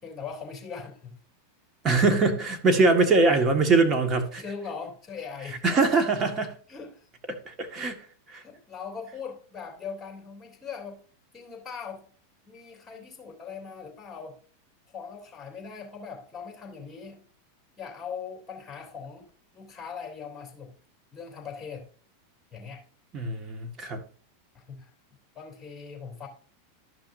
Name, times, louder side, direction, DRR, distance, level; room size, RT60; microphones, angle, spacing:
voice 1, 0.0-1.2 4.3-5.6 6.7-7.0 8.4-11.0 11.3-12.1 12.5-14.4 14.9-17.2 17.8-19.3 19.5-20.7 21.1-21.9 22.5-22.8 24.5-24.9 25.3-26.3, left 6 dB, 15° left, 3.2 m, -40 dB
voice 2, 1.8-4.4 5.6-6.6 7.3-8.0 8.3-8.4 23.1-24.0, right 3 dB, 30° right, 1.7 m, -22 dB
13.0 x 5.9 x 2.7 m
hypercardioid pair, 115°, 0 cm